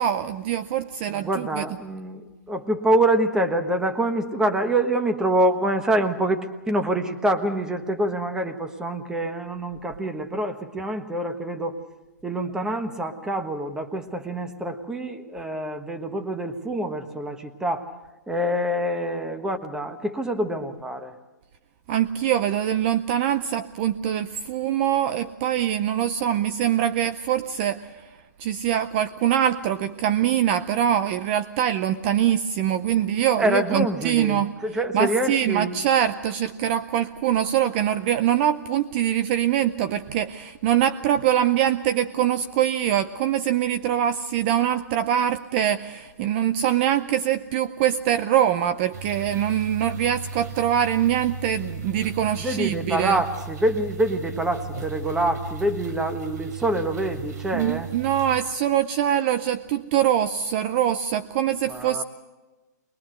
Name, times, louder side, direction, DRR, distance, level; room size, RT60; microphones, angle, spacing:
voice 1, 0.0-1.6 21.9-27.9 28.4-53.2 57.5-62.0, right 10 dB, 35° right, 12 dB, 0.6 m, -23 dB
voice 2, 1.1-11.7 12.2-17.9 18.3-21.1 33.4-35.7 52.4-57.9 61.7-62.0, right 1 dB, 5° right, 7 dB, 1.2 m, -26 dB
sound 1, 48.9-58.4, right 4 dB, 65° right, 3.6 m, -36 dB
22.0 x 21.0 x 6.5 m, 1.2 s
hypercardioid pair, 145°, 10 cm